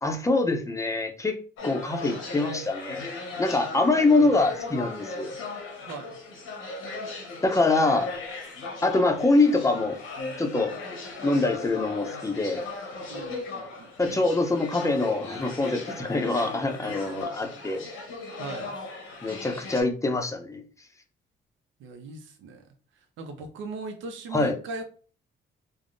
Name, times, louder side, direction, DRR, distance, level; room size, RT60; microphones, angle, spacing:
voice 1, 0.0-1.4 1.6-3.1 3.4-5.3 7.4-8.1 8.8-10.0 10.4-10.8 11.2-12.6 14.0-17.8 19.2-20.6 24.3-24.6, left 2 dB, 15° left, 5 dB, 0.5 m, -24 dB
sound 1, 1.6-19.8, left 3 dB, 90° left, 1.0 m, -37 dB
voice 2, 5.9-6.2 13.1-13.9 18.4-18.8 21.8-22.6 22.9-24.8, right 3 dB, 75° right, 5 dB, 0.5 m, -39 dB
3.4 x 2.0 x 2.5 m, 0.40 s
cardioid pair, 90°, 20 cm